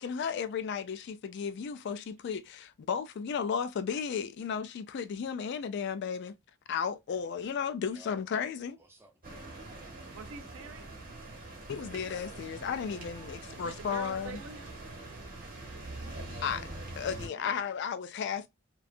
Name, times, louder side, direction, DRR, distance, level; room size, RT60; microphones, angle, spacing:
voice 1, 0.0-6.4 6.7-8.8 11.7-14.4 16.4-16.7 17.0-18.5, left 7 dB, 55° left, 0.3 m, -34 dB
voice 2, 8.8-10.1 17.2-17.6, right 1 dB, 10° right, 0.6 m, -59 dB
sound 1, 9.2-17.3, right 2 dB, 40° right, 1.1 m, -44 dB
voice 3, 10.1-11.3 13.6-14.7 15.2-15.4, right 5 dB, 70° right, 0.5 m, -46 dB
2.7 x 2.2 x 2.4 m
head